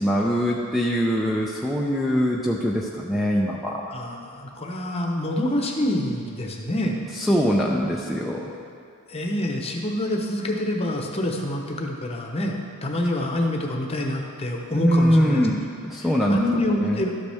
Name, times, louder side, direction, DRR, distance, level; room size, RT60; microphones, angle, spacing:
voice 1, 0.0-3.8 7.2-8.5 14.8-16.4 16.8-17.0, equal, ahead, -2 dB, 0.5 m, -22 dB
voice 2, 3.9-7.0 9.1-12.6 12.8-15.5 16.0-17.1, left 1 dB, 25° left, 1 dB, 0.9 m, -26 dB
12.5 x 8.1 x 3.5 m, 2.4 s
head